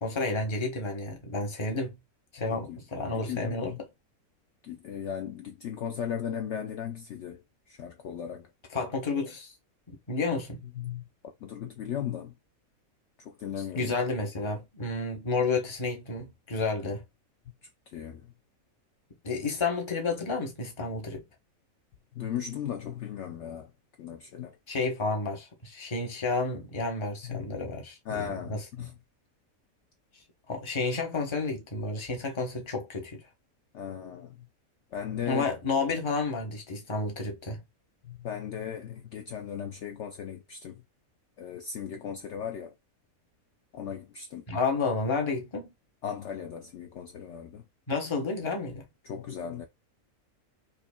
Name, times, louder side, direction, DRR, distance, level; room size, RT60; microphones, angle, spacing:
voice 1, 0.0-2.0 2.3-3.7 8.7-9.5 9.9-10.6 13.6-17.0 19.2-21.2 24.7-28.9 30.5-33.2 35.3-37.6 44.5-45.7 47.9-48.8, left 3 dB, 25° left, 0.8 m, -31 dB
voice 2, 3.1-3.8 4.6-8.5 10.8-11.1 11.4-12.3 13.2-13.9 17.9-18.3 22.1-23.7 24.0-24.6 27.2-27.4 28.1-28.9 33.7-34.5 34.9-35.5 38.1-40.8 41.4-42.7 43.7-44.4 46.0-47.6 49.0-49.7, left 9 dB, 65° left, 0.8 m, -37 dB
4.8 x 2.8 x 2.2 m
omnidirectional pair, 1.5 m